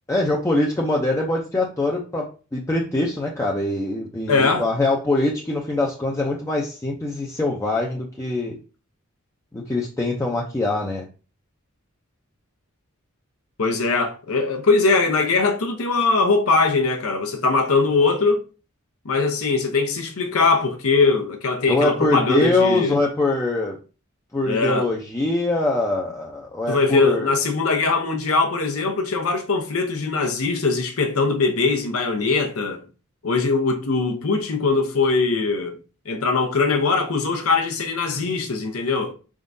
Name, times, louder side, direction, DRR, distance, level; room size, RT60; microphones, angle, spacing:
voice 1, 0.1-8.6 9.5-11.0 21.7-23.8 24.3-27.3, left 2 dB, 15° left, 0.5 m, -23 dB
voice 2, 4.3-4.7 13.6-18.5 19.0-23.0 24.4-24.9 26.7-32.9 33.2-35.8 36.0-39.1, left 4 dB, 80° left, 0.8 m, -21 dB
4.7 x 3.6 x 2.6 m
head